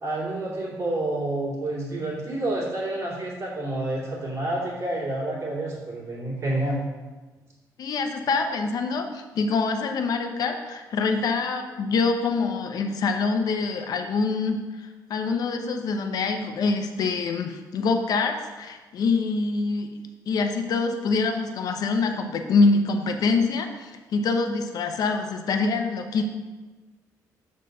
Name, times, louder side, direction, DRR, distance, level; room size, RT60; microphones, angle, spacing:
voice 1, 0.0-6.8, right 1 dB, 45° right, -5 dB, 2.5 m, -29 dB
voice 2, 7.8-19.9 20.3-26.2, left 4 dB, 60° left, 5 dB, 0.8 m, -25 dB
6.7 x 4.1 x 6.4 m, 1.3 s
cardioid pair, 120°, 7 cm